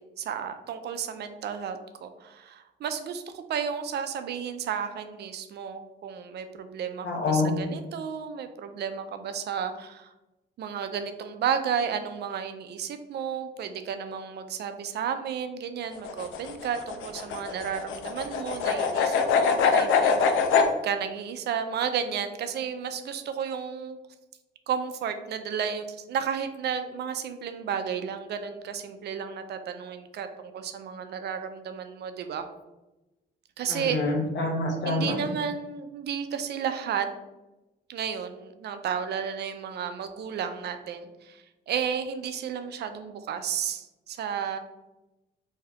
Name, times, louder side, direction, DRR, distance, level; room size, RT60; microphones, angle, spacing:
voice 1, 0.2-10.1 10.6-20.5 20.8-24.0 24.7-32.5 33.6-34.0 34.8-37.1 37.9-44.6, right 7 dB, 55° right, 8 dB, 0.4 m, -32 dB
voice 2, 7.0-7.5 33.7-35.1, left 2 dB, 60° left, 2 dB, 0.8 m, -26 dB
sound 1, 16.0-20.7, left 6 dB, 75° left, 0.4 m, -24 dB
2.7 x 2.3 x 3.4 m, 1.0 s
cardioid pair, 90°, 20 cm